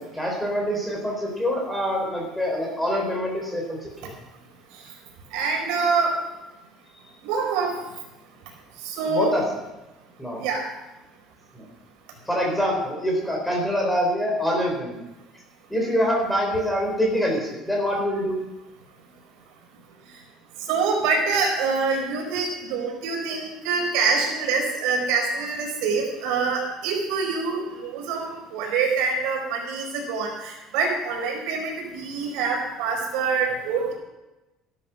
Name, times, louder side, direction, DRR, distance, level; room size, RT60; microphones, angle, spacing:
voice 1, 0.0-4.1 9.0-9.4 10.2-10.4 11.5-11.7 12.3-15.0 15.7-18.4, equal, 5° left, 0 dB, 3.7 m, -25 dB
voice 2, 5.3-6.1 7.2-7.7 8.8-9.4 10.4-10.6 20.7-33.9, right 4 dB, 75° right, 0 dB, 4.6 m, -25 dB
14.0 x 12.0 x 5.7 m, 1.0 s
cardioid pair, 175°, 0 cm